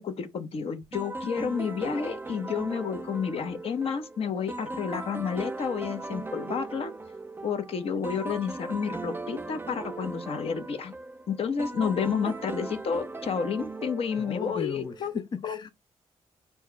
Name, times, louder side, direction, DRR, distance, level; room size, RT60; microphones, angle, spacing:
voice 1, 0.0-6.9 7.4-10.9 11.3-15.1 15.4-15.6, left 6 dB, 60° left, 0.9 m, -30 dB
sound 1, 0.9-15.1, right 2 dB, 20° right, 0.5 m, -38 dB
voice 2, 14.2-15.7, left 5 dB, 40° left, 0.4 m, -35 dB
4.3 x 2.3 x 4.5 m
cardioid pair, 80°, 11 cm